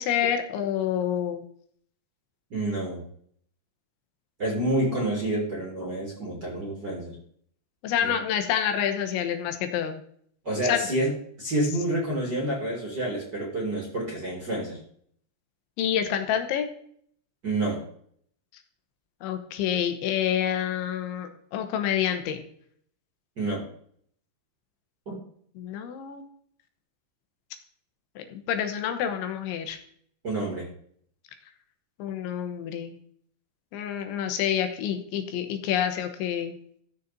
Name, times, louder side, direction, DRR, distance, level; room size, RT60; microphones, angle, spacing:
voice 1, 0.0-1.4 7.8-10.0 10.6-10.9 15.8-16.7 19.2-22.5 25.6-26.2 28.2-29.8 32.0-33.0 33.7-36.5, left 9 dB, 90° left, 7 dB, 3.4 m, -28 dB
voice 2, 2.5-3.0 4.4-7.1 8.0-8.1 10.4-11.1 11.4-14.8 17.4-17.8 23.4-23.6 25.1-25.2 30.2-30.7, right 1 dB, 30° right, -3 dB, 2.0 m, -28 dB
14.5 x 6.7 x 4.1 m, 0.63 s
omnidirectional pair, 5.3 m